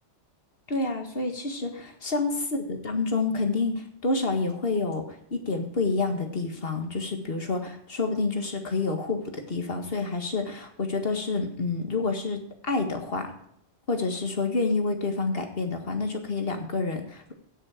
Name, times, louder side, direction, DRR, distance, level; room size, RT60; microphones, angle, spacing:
voice 1, 0.7-5.0 5.3-13.3 13.9-17.3, left 3 dB, 55° left, 5 dB, 2.0 m, -28 dB
16.5 x 6.6 x 4.9 m, 0.70 s
omnidirectional pair, 1.2 m